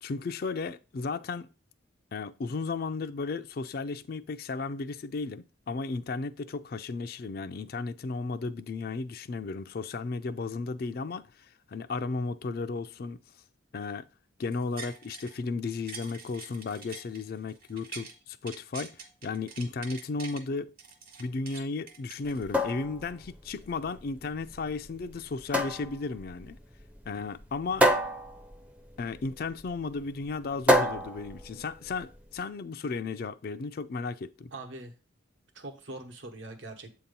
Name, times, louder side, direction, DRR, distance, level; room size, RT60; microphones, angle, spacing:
voice 1, 0.0-1.5 2.1-13.2 13.7-14.1 14.4-20.7 21.2-26.6 27.1-27.9 29.0-34.5, left 4 dB, 50° left, 0.4 m, -34 dB
sound 1, 14.5-15.4 15.7-18.1 18.5-20.4 20.8-22.8 23.2-23.3, right 4 dB, 45° right, 1.3 m, -45 dB
sound 2, 22.3-32.3, equal, 5° right, 0.5 m, -30 dB
voice 2, 34.5-34.9 35.5-37.0, right 2 dB, 70° right, 1.1 m, -42 dB
7.9 x 2.9 x 5.3 m
head